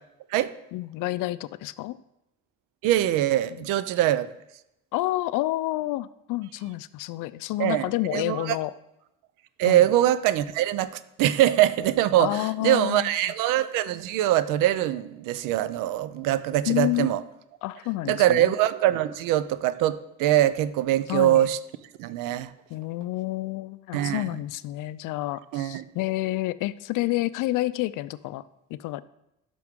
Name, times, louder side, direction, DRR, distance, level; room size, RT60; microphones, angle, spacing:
voice 1, 0.7-2.0 3.4-3.7 4.9-8.7 9.6-9.9 12.2-13.1 16.6-17.1 17.6-18.5 21.1-21.5 22.7-28.4 28.7-29.0, left 17 dB, 75° left, 16 dB, 0.5 m, -29 dB
voice 2, 2.8-4.3 7.6-8.6 9.6-17.2 18.1-21.6 22.0-22.5 23.9-24.3 25.5-25.8, right 13 dB, 90° right, 15 dB, 0.5 m, -23 dB
10.5 x 6.1 x 3.6 m, 0.88 s
cardioid pair, 120°, 31 cm